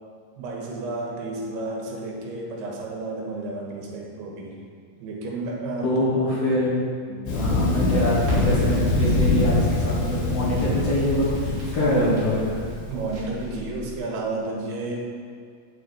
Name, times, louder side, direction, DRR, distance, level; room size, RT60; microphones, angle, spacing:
voice 1, 0.4-4.6 5.0-5.9 7.1-7.3 11.8-12.2 12.9-15.0, right 2 dB, 85° right, -2 dB, 3.3 m, -31 dB
voice 2, 5.8-6.8 7.3-12.6, left 1 dB, 50° left, -7 dB, 2.2 m, -24 dB
Thunder, 7.3-13.1, left 2 dB, 85° left, 3.9 m, -24 dB
Crackle, 8.2-14.0, right 2 dB, 40° right, 3.2 m, -38 dB
8.6 x 8.5 x 3.4 m, 2.2 s
omnidirectional pair, 4.5 m